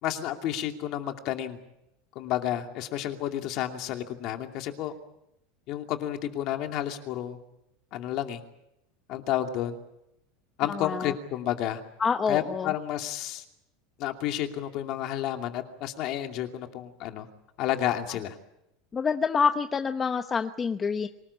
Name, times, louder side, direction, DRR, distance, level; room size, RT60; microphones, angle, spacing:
voice 1, 0.0-1.6 2.1-4.9 5.7-7.4 7.9-8.4 9.1-9.8 10.6-11.8 12.3-13.4 14.0-17.3 17.6-18.4, left 12 dB, 45° left, 5 dB, 2.6 m, -31 dB
voice 2, 10.7-11.1 12.0-12.7 18.9-21.1, left 5 dB, 20° left, 7 dB, 0.9 m, -27 dB
25.0 x 19.0 x 8.5 m, 0.86 s
supercardioid pair, 155°, 0 cm